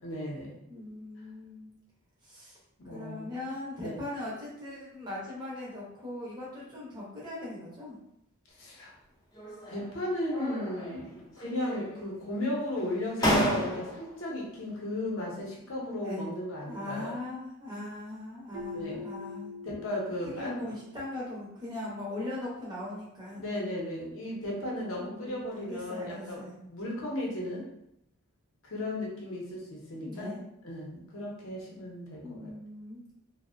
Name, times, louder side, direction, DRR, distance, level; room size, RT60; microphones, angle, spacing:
voice 1, 0.0-0.6 2.8-3.4 3.8-4.0 8.6-8.9 9.7-17.2 18.7-19.0 19.6-20.6 23.3-26.4 26.7-27.6 28.6-30.3 30.6-32.2, left 1 dB, 60° left, -3 dB, 0.7 m, -35 dB
voice 2, 0.7-1.7 2.2-2.6 2.9-8.0 16.0-16.3 16.7-19.5 20.4-23.4 25.0-26.5 30.0-30.4 32.2-33.1, left 1 dB, 20° right, -6 dB, 0.7 m, -40 dB
sound 1, 9.3-9.9 10.3-11.1 11.4-12.1 12.8-12.9 13.2-14.1, left 1 dB, 15° left, 0.4 m, -31 dB
Keyboard (musical), 18.5-21.3, left 3 dB, 50° right, 0.3 m, -43 dB
2.6 x 2.0 x 2.4 m, 0.78 s
head